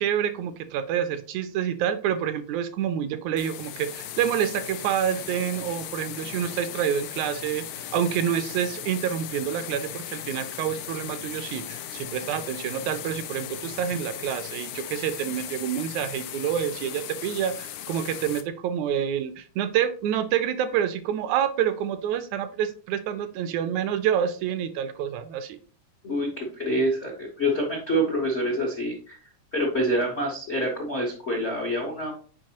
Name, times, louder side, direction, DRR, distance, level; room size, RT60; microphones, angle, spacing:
voice 1, 0.0-25.6, right 9 dB, 80° right, 10 dB, 1.8 m, -28 dB
sound 1, 3.4-18.4, left 10 dB, 90° left, 2.2 m, -37 dB
voice 2, 26.0-29.2 29.5-32.1, equal, 70° left, -1 dB, 0.6 m, -26 dB
7.6 x 5.1 x 2.9 m, 0.41 s
omnidirectional pair, 3.5 m